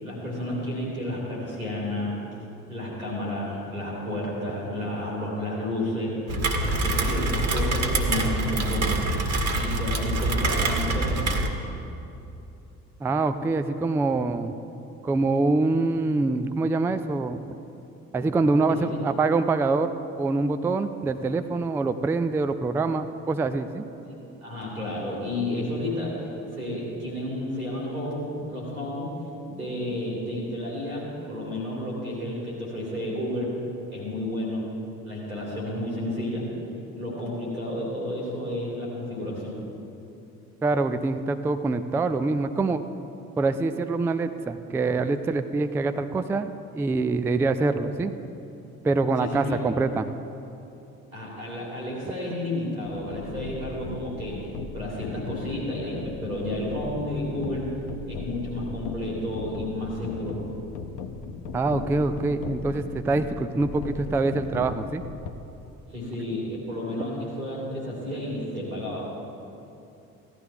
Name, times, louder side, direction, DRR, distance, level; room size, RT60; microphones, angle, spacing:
voice 1, 0.0-2.2 2.7-8.9 9.5-11.3 18.7-19.0 24.1-29.1 29.5-33.5 33.9-34.7 35.0-36.5 36.9-39.6 49.2-49.6 51.1-54.5 54.7-57.7 58.0-60.4 65.9-69.0, left 1 dB, 90° right, -5 dB, 3.1 m, -31 dB
Rain, 6.3-11.5, right 2 dB, 40° right, 1.7 m, -25 dB
voice 2, 13.0-14.5 15.0-17.4 18.1-19.9 20.2-23.8 40.6-42.8 43.4-46.5 46.8-48.1 48.8-50.1 61.5-65.0, right 3 dB, 5° right, 10 dB, 0.3 m, -25 dB
sound 1, 52.9-65.3, left 5 dB, 60° left, 0.8 m, -37 dB
16.5 x 11.5 x 3.4 m, 2.8 s
figure-of-eight pair, 50°, 41 cm